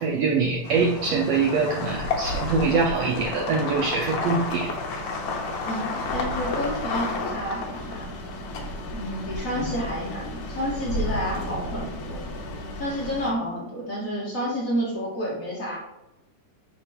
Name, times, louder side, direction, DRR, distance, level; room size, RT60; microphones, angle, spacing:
voice 1, 0.0-4.7 9.6-9.7, right 4 dB, 75° right, 1 dB, 1.5 m, -24 dB
sound 1, 0.6-13.3, left 2 dB, 70° left, 2.2 m, -31 dB
voice 2, 5.7-8.1 8.9-12.3 12.8-15.8, equal, 30° left, -5 dB, 1.8 m, -30 dB
7.2 x 3.5 x 5.0 m, 0.94 s
omnidirectional pair, 3.6 m